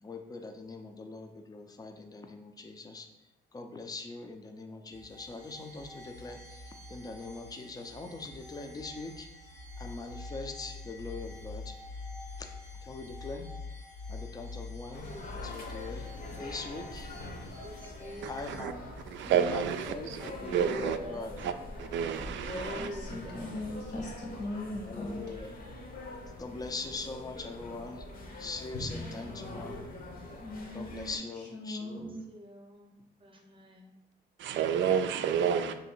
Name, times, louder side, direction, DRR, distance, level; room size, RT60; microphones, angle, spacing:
voice 1, 0.0-3.1 3.5-9.3 9.8-11.8 12.8-13.5 14.1-15.1 15.4-17.1 18.3-18.9 19.2-21.3 24.9-25.5 26.4-28.1 28.4-29.8 30.7-32.2, left 3 dB, 20° left, 5 dB, 0.5 m, -42 dB
sound 1, 4.9-18.6, left 3 dB, 90° left, 1.2 m, -45 dB
sound 2, 14.9-31.2, left 2 dB, 45° left, 0.8 m, -44 dB
voice 2, 17.6-18.3 20.2-21.4 22.2-23.7 28.8-29.7 32.3-33.9, equal, 25° right, 2 dB, 0.8 m, -46 dB
voice 3, 19.1-21.0 21.4-21.5 21.8-22.9 34.4-35.8, right 8 dB, 70° right, 9 dB, 0.4 m, -30 dB
voice 4, 22.8-25.2 30.4-32.3, left 1 dB, 60° left, -1 dB, 1.2 m, -39 dB
3.1 x 2.7 x 4.4 m, 0.97 s
cardioid pair, 90°, 20 cm